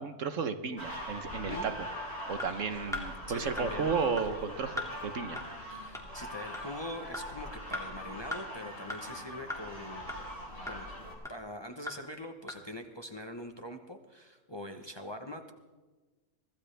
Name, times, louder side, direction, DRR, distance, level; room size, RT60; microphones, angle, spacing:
voice 1, 0.0-1.9 2.3-5.4, right 5 dB, 60° right, 9 dB, 1.3 m, -33 dB
sound 1, 0.8-11.1, equal, 45° left, 7.5 m, -42 dB
voice 2, 1.5-1.8 3.3-3.9 5.7-10.2 10.6-11.0 11.3-15.5, left 1 dB, 20° left, 5 dB, 1.0 m, -43 dB
sound 2, 2.4-2.5 2.9-3.1 3.6-3.7 4.2-4.3 4.8-4.9 5.4-5.5 5.9-6.0 6.5-6.6 7.1-7.2 7.7-7.8 8.3-8.4 8.9-9.0 9.5-9.6 10.1-10.2 10.7-10.8 11.2-11.3 11.9-12.0 12.5-12.6, left 1 dB, ahead, 2.4 m, -37 dB
24.5 x 16.0 x 3.4 m, 1.3 s
omnidirectional pair, 1.5 m